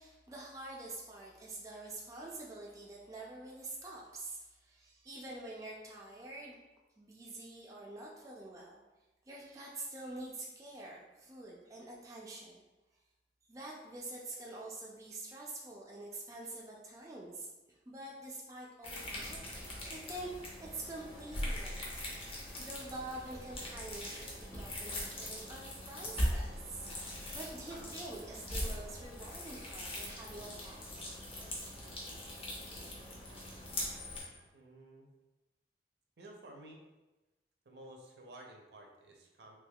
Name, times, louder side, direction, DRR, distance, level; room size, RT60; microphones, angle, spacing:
voice 1, 0.0-6.6 7.0-8.8 9.3-12.6 13.5-20.3 20.6-22.0 22.6-31.1, right 2 dB, 20° right, -3 dB, 0.3 m, -47 dB
sound 1, 18.8-34.2, equal, 30° left, 0.7 m, -41 dB
Screech, 25.2-34.5, left 4 dB, 75° left, 0.5 m, -60 dB
voice 2, 34.5-35.1 36.2-36.8 37.7-39.6, right 1 dB, 70° right, 1 dB, 0.6 m, -53 dB
3.4 x 3.1 x 2.2 m, 1.1 s
head